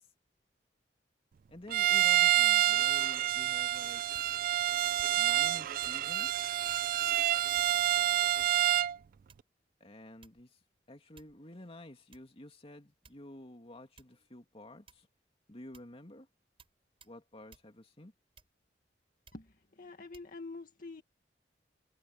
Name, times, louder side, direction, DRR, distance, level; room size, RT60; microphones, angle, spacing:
voice 1, 1.5-4.0 5.1-6.5 9.8-10.6 10.9-15.1 15.5-16.3 17.0-18.1, left 1 dB, 35° left, 2.7 m, -51 dB
Bowed string instrument, 1.7-9.0, right 12 dB, 50° right, 0.3 m, -28 dB
sound 1, 4.1-4.5 5.0-5.4 5.8-6.0 6.7-6.9 7.5-7.9 8.4-8.8 9.3-9.6 10.2-10.6 11.2-11.5 12.1-12.3 13.0-13.5 14.0-14.2 14.9-15.2 15.7-16.0 16.6-16.7 17.0-17.2 17.5-17.7 18.3-18.7 19.2-19.5 20.1-20.3, right 4 dB, 35° right, 5.8 m, -60 dB
voice 2, 19.3-21.0, left 3 dB, 50° left, 2.0 m, -46 dB
head